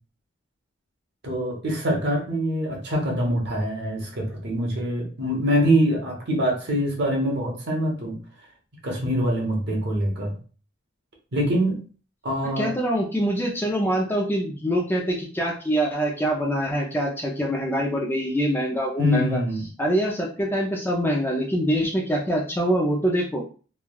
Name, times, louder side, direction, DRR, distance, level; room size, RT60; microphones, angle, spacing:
voice 1, 1.2-8.2 8.8-10.3 11.3-11.8 12.2-12.7 19.0-19.6, equal, 60° right, 0 dB, 0.9 m, -24 dB
voice 2, 12.6-19.4 19.8-23.4, equal, 10° left, -1 dB, 0.4 m, -24 dB
3.2 x 2.2 x 2.3 m, 0.38 s
head